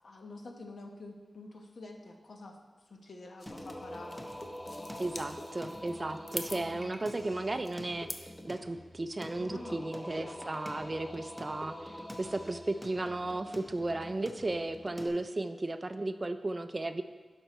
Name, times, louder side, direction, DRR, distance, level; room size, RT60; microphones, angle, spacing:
voice 1, 0.0-4.3 6.5-7.7 9.4-10.4, left 2 dB, 70° left, 2 dB, 0.9 m, -48 dB
sound 1, 3.4-8.4, left 2 dB, 40° left, 0.6 m, -46 dB
Singing, 3.5-15.1, equal, 10° left, 0.8 m, -45 dB
voice 2, 5.0-17.0, right 2 dB, 30° right, 9 dB, 0.3 m, -35 dB
11.0 x 5.3 x 3.0 m, 1.3 s
wide cardioid pair, 95°, 0 cm